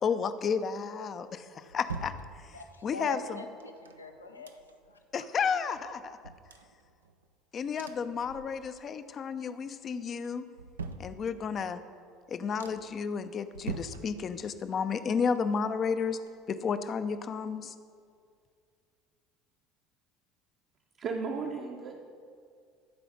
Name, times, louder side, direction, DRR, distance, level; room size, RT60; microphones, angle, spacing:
voice 1, 0.0-2.1 2.8-3.2 5.1-6.2 7.5-10.5 11.0-11.8 12.3-16.2 16.5-17.7, left 6 dB, 35° left, 12 dB, 0.5 m, -32 dB
sound 1, 1.1-2.9 3.6-5.0 5.4-5.5 5.7-7.3 7.8-8.9 9.3-9.8 10.2-11.7 12.1-12.2 12.6-13.1 13.5-14.7 15.0-16.8 17.1-17.2, right 4 dB, 75° right, 0.4 m, -45 dB
voice 2, 2.5-4.6 4.9-5.0, left 3 dB, 80° left, 6 dB, 0.7 m, -43 dB
voice 3, 21.0-22.0, right 4 dB, 45° right, 1 dB, 0.8 m, -35 dB
13.0 x 5.0 x 6.4 m, 2.2 s
figure-of-eight pair, 65°, 0 cm